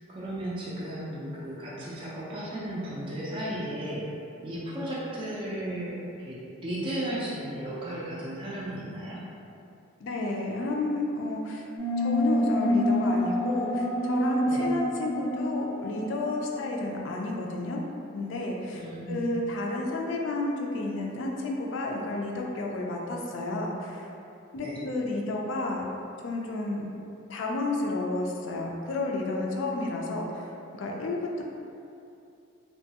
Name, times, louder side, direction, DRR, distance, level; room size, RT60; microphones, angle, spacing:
voice 1, 0.1-4.1 4.4-9.3 14.5-14.6 18.8-19.4 24.6-24.8, right 1 dB, 25° right, -7 dB, 0.3 m, -35 dB
voice 2, 10.0-11.7 12.0-17.8 18.1-24.1 24.5-25.8 26.2-26.9 27.3-31.4, left 2 dB, 65° left, 0 dB, 0.4 m, -31 dB
sound 1, 11.8-17.0, left 1 dB, 75° right, 0.6 m, -27 dB
2.9 x 2.2 x 2.7 m, 2.7 s
head